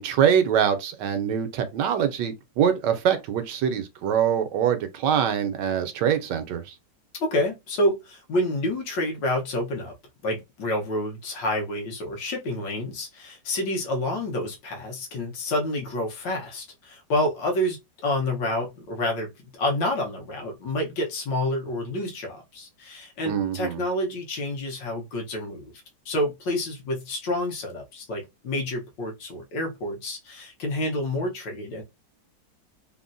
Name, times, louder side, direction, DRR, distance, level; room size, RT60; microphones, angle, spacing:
voice 1, 0.0-6.7 23.3-23.8, right 8 dB, 75° right, 1.2 m, -24 dB
voice 2, 7.2-9.9 10.2-17.8 18.0-25.7 26.0-31.8, left 1 dB, 75° left, 1.6 m, -28 dB
3.7 x 2.1 x 2.5 m
omnidirectional pair, 2.0 m